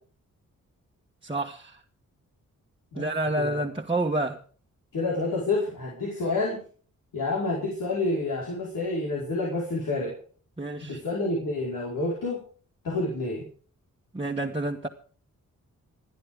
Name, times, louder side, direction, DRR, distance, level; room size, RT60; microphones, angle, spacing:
voice 1, 1.2-1.8 2.9-4.4 10.6-11.0 14.1-14.9, right 2 dB, 15° right, -1 dB, 1.5 m, -29 dB
voice 2, 4.9-6.6 7.1-10.1 10.8-12.4 12.8-13.4, left 2 dB, 80° left, -5 dB, 5.1 m, -28 dB
27.5 x 9.8 x 3.8 m, 0.43 s
cardioid pair, 60°, 32 cm